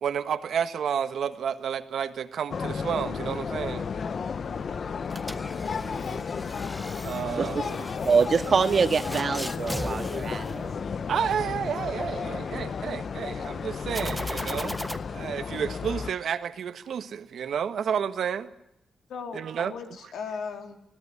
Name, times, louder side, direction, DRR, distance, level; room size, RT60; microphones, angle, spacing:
voice 1, 0.0-3.9 7.0-7.8 11.0-14.8 15.1-18.5 19.3-19.7, right 8 dB, 70° right, 10 dB, 1.6 m, -30 dB
sound 1, 2.5-16.1, left 6 dB, 50° left, 0.9 m, -33 dB
voice 2, 4.8-5.2 19.1-20.8, left 5 dB, 85° left, 5 dB, 3.4 m, -38 dB
sound 2, 5.1-11.2 13.9-15.0, equal, ahead, 1.2 m, -38 dB
voice 3, 7.4-10.7, right 5 dB, 45° right, 9 dB, 1.7 m, -25 dB
25.0 x 17.0 x 9.8 m, 0.84 s
cardioid pair, 105°, 0 cm